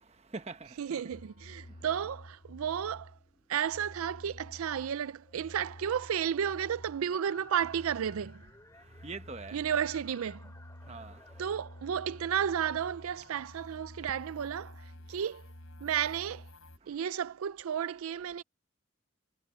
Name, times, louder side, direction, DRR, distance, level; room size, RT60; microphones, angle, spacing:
voice 1, 0.0-1.0 1.7-1.8 8.7-9.6 10.9-11.4 16.8-17.0, right 3 dB, 30° right, 1.0 m, -45 dB
sound 1, 0.8-13.5, left 2 dB, 15° left, 2.7 m, -60 dB
voice 2, 0.8-3.1 3.5-8.5 9.5-10.5 11.4-15.4 15.8-16.5 16.9-18.4, right 8 dB, 80° right, 0.4 m, -33 dB
sound 2, 1.1-3.3 3.6-7.2 7.5-16.8, left 1 dB, 80° left, 4.1 m, -51 dB
head